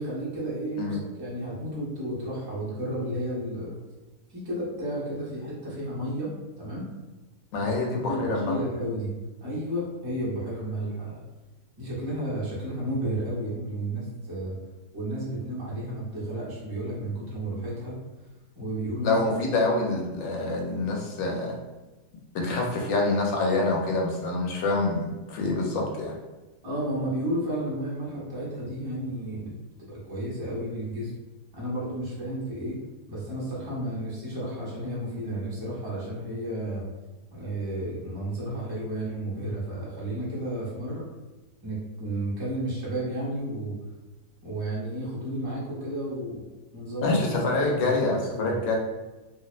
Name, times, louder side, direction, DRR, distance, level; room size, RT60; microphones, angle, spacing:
voice 1, 0.0-3.7 4.3-6.3 6.6-6.9 7.6-9.1 9.4-11.2 11.8-14.6 14.9-17.9 18.6-19.2 26.6-29.5 29.9-31.1 31.5-32.8 33.1-36.8 37.3-41.1 41.6-43.8 44.4-46.4 46.7-47.8 48.1-48.6, right 1 dB, 35° right, -7 dB, 0.3 m, -32 dB
voice 2, 7.5-8.5 19.0-21.6 22.3-26.1 47.0-48.8, left 2 dB, 70° left, -1 dB, 0.9 m, -26 dB
2.7 x 2.0 x 2.4 m, 1.1 s
omnidirectional pair, 1.6 m